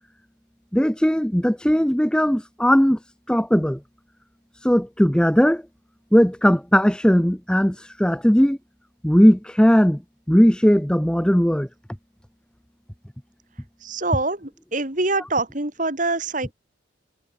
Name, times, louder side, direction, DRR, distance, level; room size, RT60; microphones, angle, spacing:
voice 1, 0.7-3.0 3.3-3.8 4.6-5.6 6.1-8.6 9.0-10.0 10.3-11.7, equal, 5° left, 0.8 m, -18 dB
voice 2, 13.8-16.5, right 2 dB, 40° right, 3.3 m, -25 dB
head